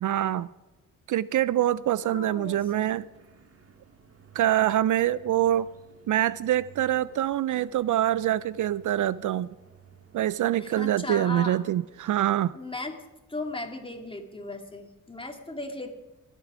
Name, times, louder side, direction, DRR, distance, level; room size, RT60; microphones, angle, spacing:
voice 1, 0.0-0.5 1.1-3.1 4.3-5.7 6.1-9.5 10.1-12.6, right 12 dB, 65° right, 0.5 m, -25 dB
voice 2, 2.0-2.6 10.6-11.6 12.5-13.0 13.3-15.9, left 2 dB, 15° left, 2.5 m, -36 dB
sound 1, 2.4-12.3, right 6 dB, 45° right, 1.7 m, -56 dB
22.5 x 8.3 x 5.0 m
cardioid pair, 75°, 33 cm